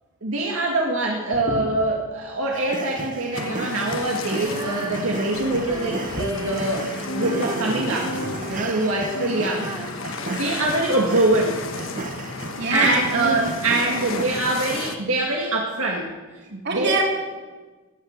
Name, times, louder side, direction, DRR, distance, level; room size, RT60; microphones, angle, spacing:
voice 1, 0.2-6.8 7.1-8.1 8.5-9.7 10.3-11.6 12.7-16.1 16.5-17.0, right 2 dB, 80° right, -1 dB, 2.1 m, -24 dB
sound 1, 2.5-14.3, right 3 dB, 40° right, 0.8 m, -35 dB
sound 2, 3.4-15.0, left 3 dB, 70° left, 1.4 m, -33 dB
Female singing, 4.3-11.4 12.0-12.1, right 1 dB, 20° right, 1.2 m, -38 dB
voice 2, 12.6-13.4 13.9-14.0 16.6-17.0, right 3 dB, 55° right, 0 dB, 3.6 m, -25 dB
16.5 x 10.5 x 8.1 m, 1.3 s
head